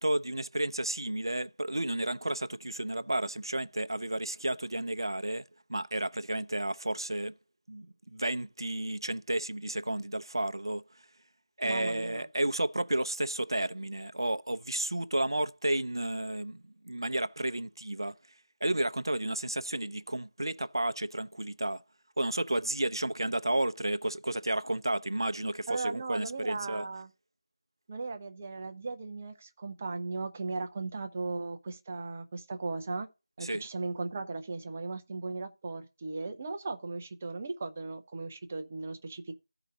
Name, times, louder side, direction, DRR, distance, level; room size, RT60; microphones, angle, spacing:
voice 1, 0.0-5.4 5.7-7.3 7.7-10.8 11.6-18.2 18.6-21.8 22.2-26.8 33.4-33.7, right 1 dB, 65° right, 0.6 m, -32 dB
voice 2, 11.6-12.2 25.7-27.1 27.9-33.1 33.4-39.3, right 3 dB, 20° right, 0.6 m, -37 dB
14.0 x 4.9 x 3.8 m
figure-of-eight pair, 170°, 2 cm